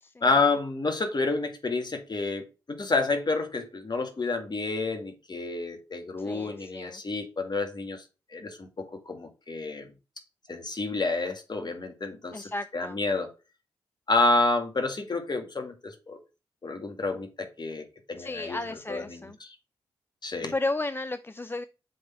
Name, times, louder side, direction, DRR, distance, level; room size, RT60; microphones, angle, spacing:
voice 1, 0.2-8.0 8.3-9.9 10.5-13.3 14.1-16.2 16.6-18.6 18.9-19.6 20.2-20.5, left 3 dB, 40° left, 2.0 m, -29 dB
voice 2, 6.2-7.0 12.3-13.0 18.2-19.4 20.4-21.6, left 2 dB, 20° left, 0.5 m, -34 dB
7.6 x 3.9 x 4.4 m
supercardioid pair, 40°, 11 cm